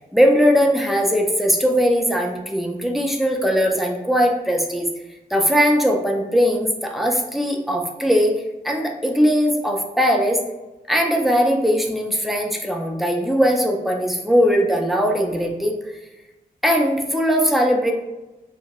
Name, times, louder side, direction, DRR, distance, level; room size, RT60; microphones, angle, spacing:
voice 1, 0.1-4.9 5.3-8.3 8.6-10.4 10.9-15.7 16.6-17.9, equal, ahead, 1 dB, 0.4 m, -19 dB
2.8 x 2.2 x 2.9 m, 1.0 s
wide cardioid pair, 115°, 16 cm